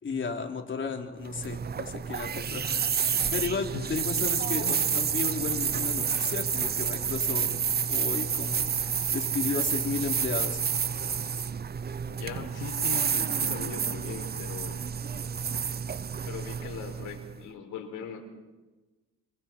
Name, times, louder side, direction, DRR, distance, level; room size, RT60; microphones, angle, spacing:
voice 1, 0.0-7.6 7.9-10.6, left 5 dB, 40° left, 2 dB, 3.7 m, -34 dB
sound 1, 1.2-17.4, right 7 dB, 30° right, 0.7 m, -29 dB
voice 2, 12.1-14.8 16.2-18.2, left 7 dB, 85° left, 3 dB, 5.0 m, -39 dB
27.5 x 27.5 x 4.6 m, 1.2 s
cardioid pair, 90°, 30 cm